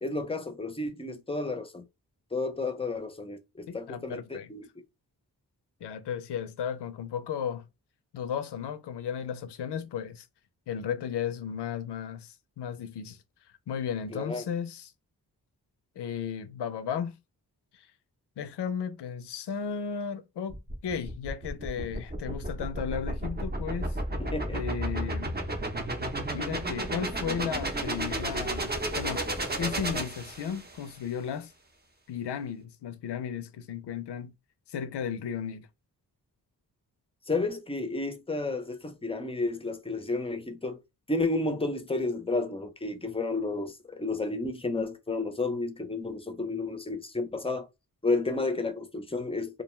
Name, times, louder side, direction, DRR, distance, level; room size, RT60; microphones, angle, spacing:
voice 1, 0.0-1.8 2.3-4.6 14.1-14.4 24.2-24.6 37.3-40.8 41.1-47.7 48.0-49.6, left 3 dB, 15° left, 0.5 m, -31 dB
voice 2, 3.7-4.5 5.8-7.7 8.1-10.3 10.7-13.2 13.7-14.9 16.0-17.2 17.7-17.9 18.4-24.0 24.5-25.3 26.3-29.3 29.6-31.5 32.1-34.3 34.7-35.7, left 7 dB, 90° left, 0.5 m, -35 dB
sound 1, 20.5-30.8, right 1 dB, 25° right, 0.6 m, -33 dB
2.4 x 2.2 x 3.0 m
wide cardioid pair, 80°, 39 cm